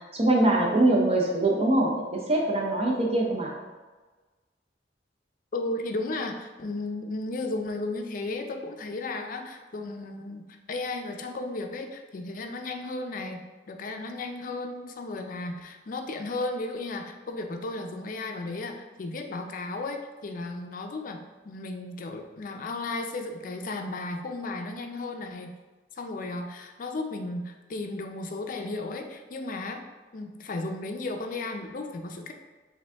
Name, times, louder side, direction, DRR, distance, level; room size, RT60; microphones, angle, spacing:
voice 1, 0.1-3.5, right 2 dB, 35° right, -1 dB, 0.6 m, -23 dB
voice 2, 5.5-13.4 13.7-21.2 21.4-25.6 26.0-29.8 30.1-32.3, left 2 dB, 50° left, 5 dB, 0.4 m, -34 dB
5.0 x 2.6 x 3.4 m, 1.3 s
head